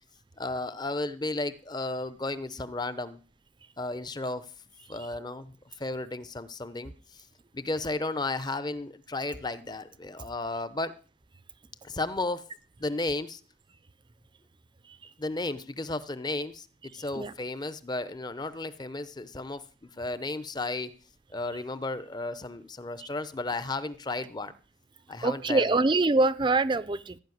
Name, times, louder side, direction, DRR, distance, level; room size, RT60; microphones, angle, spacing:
voice 1, 0.4-3.2 3.8-4.5 4.9-7.2 7.5-10.9 11.8-12.4 12.8-13.4 15.2-20.9 21.3-24.5 25.1-25.8, left 2 dB, 25° left, 13 dB, 0.7 m, -34 dB
voice 2, 25.2-27.2, right 3 dB, 25° right, 15 dB, 0.5 m, -24 dB
14.5 x 5.6 x 9.3 m, 0.38 s
head